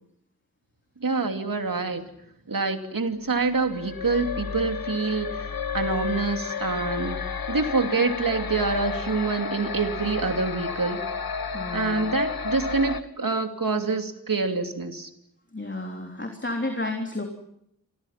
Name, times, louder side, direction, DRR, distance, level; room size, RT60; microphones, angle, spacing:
voice 1, 1.0-2.1 2.5-7.2 7.5-11.0 11.7-15.1, right 4 dB, 70° right, 6 dB, 3.0 m, -26 dB
sound 1, 3.5-13.0, left 5 dB, 80° left, 1.3 m, -32 dB
voice 2, 11.5-12.1 15.5-17.2, left 2 dB, 35° left, 3 dB, 3.5 m, -31 dB
30.0 x 25.5 x 5.9 m, 0.74 s
wide cardioid pair, 65°, 35 cm